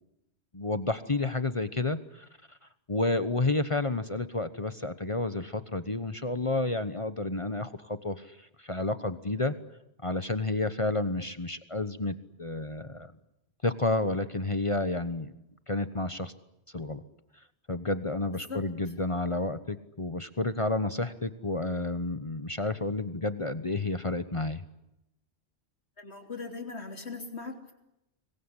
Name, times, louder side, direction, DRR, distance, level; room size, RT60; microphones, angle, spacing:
voice 1, 0.5-2.6 2.9-9.5 10.0-13.1 13.6-15.3 15.7-16.3 16.7-17.0 17.7-24.6, left 2 dB, 30° left, 12 dB, 1.2 m, -30 dB
voice 2, 26.0-27.7, left 4 dB, 70° left, 5 dB, 3.6 m, -40 dB
26.0 x 22.0 x 9.9 m, 0.85 s
omnidirectional pair, 1.1 m